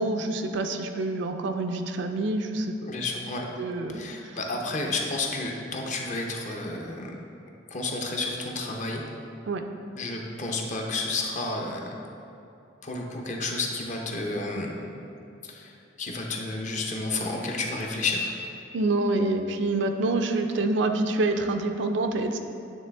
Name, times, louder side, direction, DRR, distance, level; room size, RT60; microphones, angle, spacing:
voice 1, 0.0-2.9 3.6-4.4 9.5-9.6 18.7-22.4, right 2 dB, 65° right, 6 dB, 0.4 m, -27 dB
voice 2, 2.9-3.4 3.9-7.1 7.7-9.0 10.0-12.0 12.8-14.8 15.4-18.3, left 2 dB, 40° left, 1 dB, 0.6 m, -31 dB
9.1 x 3.4 x 3.4 m, 2.7 s
head